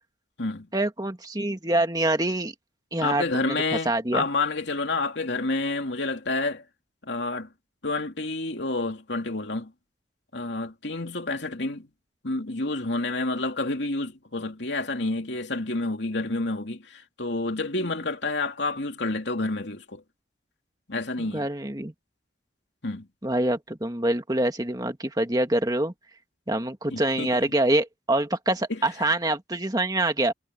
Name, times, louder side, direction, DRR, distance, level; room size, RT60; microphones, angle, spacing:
voice 1, 0.7-2.5 2.9-3.6 3.9-4.2 21.2-21.9 23.2-25.9 26.5-30.3, right 1 dB, 20° right, 1.9 m, -25 dB
voice 2, 3.0-6.6 7.0-7.5 7.8-9.7 10.3-11.9 12.2-20.0 20.9-21.5 22.8-23.1 26.9-27.3 28.7-28.8, left 2 dB, 70° left, 2.8 m, -29 dB
head